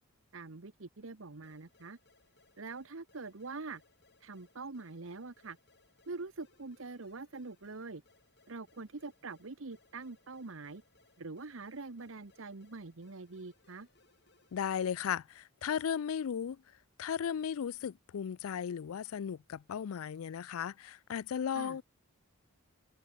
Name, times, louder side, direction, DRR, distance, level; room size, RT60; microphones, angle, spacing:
voice 1, 0.3-2.0 2.6-3.8 4.2-5.6 6.1-8.0 8.5-10.8 11.2-13.9 21.5-21.8, right 3 dB, 70° right, 1.0 m, -44 dB
sound 1, 1.4-14.8, left 3 dB, 50° left, 6.0 m, -69 dB
voice 2, 14.5-16.6 17.0-21.8, left 8 dB, 80° left, 0.4 m, -36 dB
head